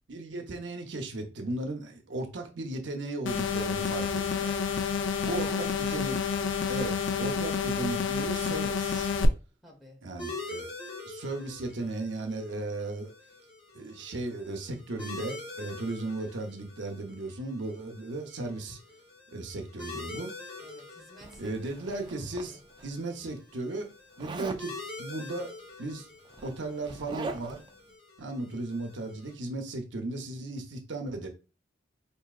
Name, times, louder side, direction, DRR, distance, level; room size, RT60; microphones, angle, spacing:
voice 1, 0.1-4.5 5.2-6.2 6.7-9.1 10.0-10.7 11.0-13.1 13.7-18.8 19.3-20.3 21.4-23.9 24.2-26.1 26.4-27.6 28.2-31.3, right 2 dB, 75° right, 0.7 m, -36 dB
sound 1, 3.3-9.3, left 6 dB, 90° left, 0.4 m, -29 dB
voice 2, 5.2-5.8 9.6-10.1 20.6-21.9 22.3-22.6, left 1 dB, ahead, 0.9 m, -50 dB
sound 2, 10.2-29.3, left 3 dB, 30° left, 1.0 m, -46 dB
Zipper (clothing), 21.2-22.9 24.2-24.7 25.8-25.9 26.2-27.7, right 3 dB, 25° right, 0.3 m, -41 dB
4.7 x 2.6 x 2.4 m
head